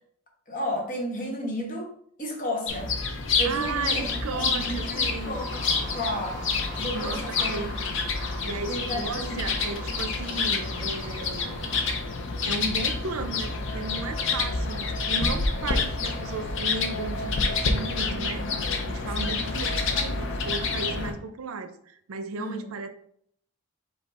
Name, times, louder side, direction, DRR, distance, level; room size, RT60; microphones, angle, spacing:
voice 1, 0.5-2.9 3.4-5.6 5.9-6.4 6.8-7.6 8.7-9.4 18.2-18.6 19.2-19.4 22.3-22.6, equal, 40° left, 0 dB, 1.1 m, -33 dB
sound 1, 2.7-21.1, left 4 dB, 60° left, 0.6 m, -28 dB
voice 2, 3.4-5.4 6.9-7.8 8.4-11.6 12.4-18.5 18.8-22.9, right 4 dB, 85° right, 9 dB, 0.5 m, -35 dB
sound 2, 3.8-11.9, right 1 dB, 40° right, 1.3 m, -43 dB
5.5 x 2.2 x 4.1 m, 0.66 s
head